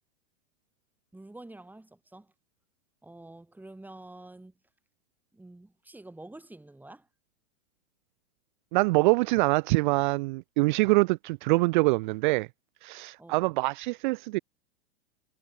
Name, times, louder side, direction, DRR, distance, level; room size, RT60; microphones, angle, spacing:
voice 1, 1.1-2.3 3.0-4.5 5.3-7.1 13.2-13.4, right 2 dB, 5° right, 5.3 m, -48 dB
voice 2, 8.7-12.5 12.8-14.4, right 24 dB, 45° right, 0.4 m, -24 dB
hypercardioid pair, 120°, 36 cm